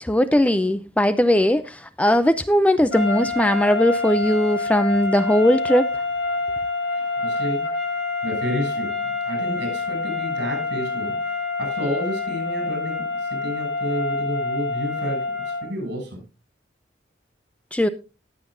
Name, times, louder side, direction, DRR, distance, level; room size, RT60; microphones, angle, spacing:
voice 1, 0.0-5.9 17.7-17.9, left 1 dB, 5° left, 0.5 m, -19 dB
sound 1, 2.9-15.8, left 3 dB, 70° left, 1.8 m, -27 dB
voice 2, 6.9-7.7 8.2-11.2 11.6-16.2, equal, 60° right, 7.6 m, -30 dB
18.5 x 7.9 x 2.6 m
head